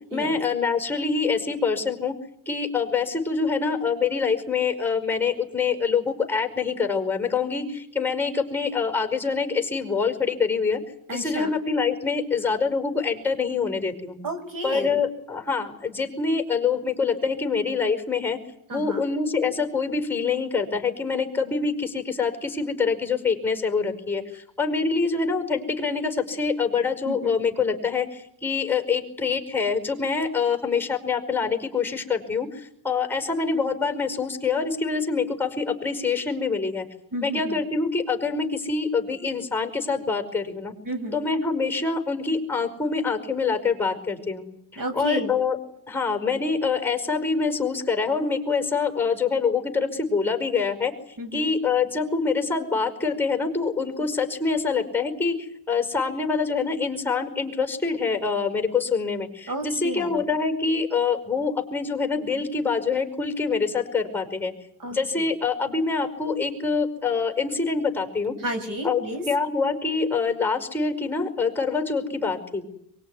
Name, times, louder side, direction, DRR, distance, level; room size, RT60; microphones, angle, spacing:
voice 1, 0.1-2.2 2.4-10.8 11.1-14.2 14.6-18.4 18.7-36.8 37.2-40.7 41.1-44.4 44.9-45.6 45.9-50.9 51.3-64.5 64.9-68.3 68.8-69.0 69.3-72.6, left 5 dB, 5° left, 6 dB, 5.1 m, -25 dB
voice 2, 11.1-11.5 14.2-15.0 18.7-19.0 27.0-27.3 37.1-37.6 40.8-41.2 44.8-45.3 51.2-51.5 59.5-60.2 64.8-65.3 68.4-69.2, right 1 dB, 50° right, 9 dB, 6.3 m, -32 dB
23.5 x 22.0 x 9.8 m, 0.76 s
cardioid pair, 100°, 42 cm